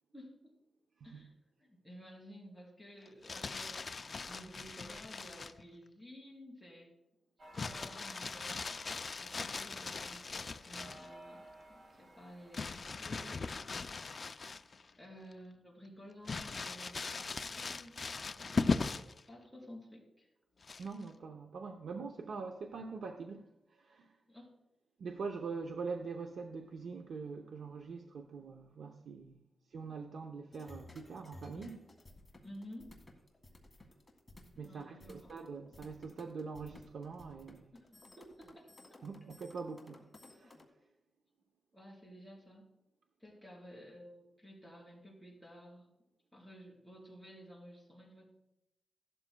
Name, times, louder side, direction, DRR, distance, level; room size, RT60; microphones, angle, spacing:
voice 1, 0.1-0.5 1.0-1.3 1.6-6.9 7.6-14.0 15.0-20.3 24.3-24.5 31.6-31.7 32.4-33.0 34.6-35.3 37.7-37.9 38.2-39.0 41.7-42.7 43.2-45.9 46.3-48.3, equal, 5° right, 3.8 m, -53 dB
Crumpling crinkling, 3.1-5.6 7.5-11.1 12.5-14.9 15.3-15.4 16.3-19.2 20.6-21.1, left 4 dB, 35° left, 0.4 m, -39 dB
sound 1, 7.4-13.2, right 1 dB, 45° right, 2.5 m, -57 dB
voice 2, 20.8-24.2 25.0-29.4 29.7-31.8 34.6-37.7 39.0-40.6, right 4 dB, 70° right, 0.7 m, -44 dB
sound 2, 30.5-40.7, left 1 dB, 15° left, 1.7 m, -57 dB
16.0 x 12.0 x 2.3 m
wide cardioid pair, 165°, 0 cm